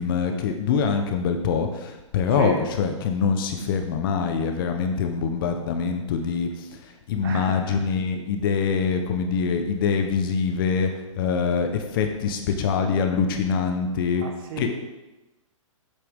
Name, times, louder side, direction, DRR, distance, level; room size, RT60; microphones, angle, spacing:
voice 1, 0.0-10.9 11.2-14.2 14.6-14.7, left 6 dB, 40° left, 5 dB, 1.0 m, -24 dB
voice 2, 2.3-2.6 7.2-7.8 14.1-14.8, right 5 dB, 45° right, 3 dB, 1.5 m, -33 dB
8.3 x 8.3 x 3.7 m, 1.0 s
hypercardioid pair, 145°, 17 cm